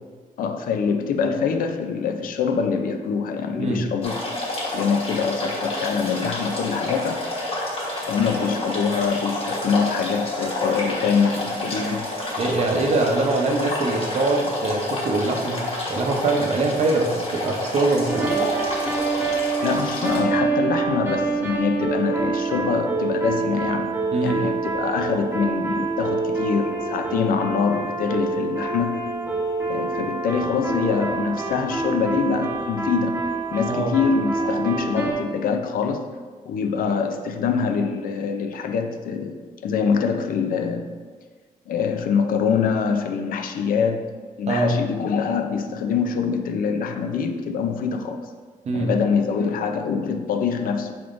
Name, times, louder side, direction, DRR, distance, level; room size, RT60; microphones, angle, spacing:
voice 1, 0.4-4.3 4.7-7.2 8.1-12.1 19.6-23.9 24.2-29.1 29.7-33.2 33.5-36.1 36.4-39.4 39.6-40.9 41.7-44.1 44.4-48.3 48.7-50.9, left 6 dB, 70° left, 5 dB, 0.4 m, -24 dB
voice 2, 3.5-3.9 12.4-18.5 24.1-24.4 33.7-33.9 44.5-44.8 48.7-48.9, right 2 dB, 45° right, 1 dB, 0.6 m, -23 dB
sound 1, 4.0-20.2, left 1 dB, 40° left, 1.2 m, -29 dB
sound 2, 18.1-35.1, right 3 dB, 20° right, 0.8 m, -26 dB
6.0 x 3.5 x 2.5 m, 1.5 s
cardioid pair, 135°, 15 cm